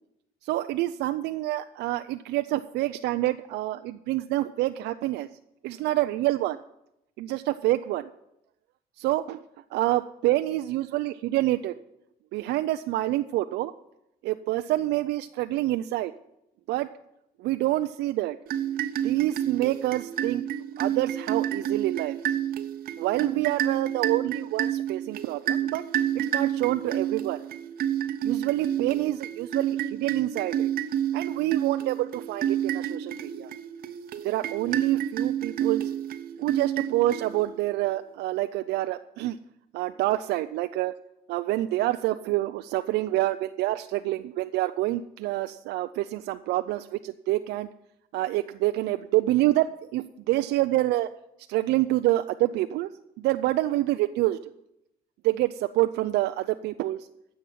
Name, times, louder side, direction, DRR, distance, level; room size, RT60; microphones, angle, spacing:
voice 1, 0.4-5.3 5.6-6.6 7.2-8.1 9.0-9.4 9.7-11.7 12.3-13.7 14.2-16.1 16.7-16.9 17.4-18.4 19.0-20.4 20.8-22.2 23.0-25.8 26.1-27.4 28.2-30.7 31.1-33.5 34.2-35.8 36.4-39.4 39.7-40.9 41.3-47.7 48.1-51.1 51.5-52.9 53.2-54.5 55.2-57.1, right 16 dB, 80° right, 9 dB, 0.5 m, -27 dB
sound 1, 18.5-37.7, right 10 dB, 60° right, 0.8 m, -29 dB
10.0 x 7.2 x 9.1 m, 0.84 s
cardioid pair, 110°, 17 cm